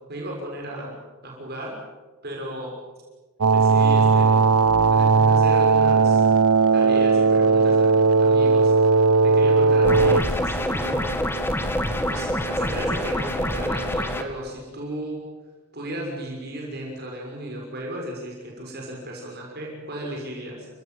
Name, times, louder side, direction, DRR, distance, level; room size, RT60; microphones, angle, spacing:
voice 1, 0.1-0.9 1.2-1.8 2.2-2.7 3.5-4.5 4.9-6.2 6.7-11.1 12.1-15.2 15.7-20.7, right 1 dB, 45° right, -1 dB, 6.2 m, -35 dB
sound 1, 3.4-10.2, right 4 dB, 80° right, 0.8 m, -17 dB
sound 2, 9.8-14.2, equal, 10° left, 2.2 m, -26 dB
29.5 x 17.0 x 9.2 m, 1.3 s
head